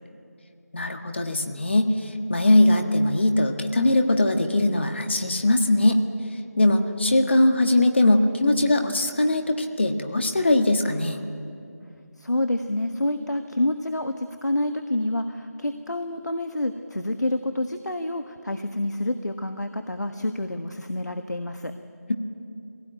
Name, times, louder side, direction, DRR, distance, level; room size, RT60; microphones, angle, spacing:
voice 1, 0.7-6.0 6.6-11.2, left 1 dB, 40° left, 5 dB, 1.5 m, -21 dB
voice 2, 12.2-21.7, left 1 dB, 80° left, 7 dB, 1.3 m, -28 dB
22.5 x 17.5 x 9.1 m, 2.5 s
figure-of-eight pair, 170°, 9 cm